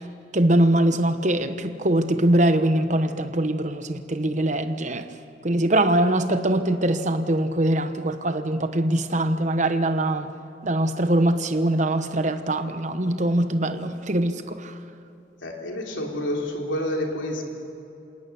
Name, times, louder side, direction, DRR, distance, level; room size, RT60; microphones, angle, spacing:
voice 1, 0.3-5.1 5.4-10.3 10.6-14.7, right 1 dB, 40° right, 1.0 m, -22 dB
voice 2, 15.4-17.4, left 1 dB, 90° left, 3.6 m, -28 dB
27.5 x 18.0 x 7.1 m
head